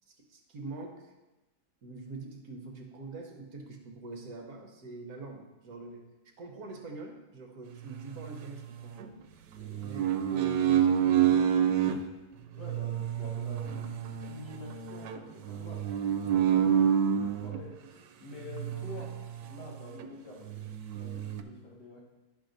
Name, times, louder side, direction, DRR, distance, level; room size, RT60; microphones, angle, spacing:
voice 1, 0.1-1.1 1.8-9.2 9.8-12.2 16.6-16.9, right 3 dB, 65° right, 2 dB, 1.5 m, -45 dB
sound 1, 7.8-9.1 9.6-12.0 12.6-17.6 18.5-19.7 20.0-20.1 20.4-21.4, right 9 dB, 90° right, 1.2 m, -29 dB
voice 2, 9.5-9.9 12.5-19.2 19.5-22.0, left 2 dB, 80° left, -4 dB, 2.4 m, -47 dB
11.5 x 5.7 x 2.6 m, 1.1 s
omnidirectional pair, 1.8 m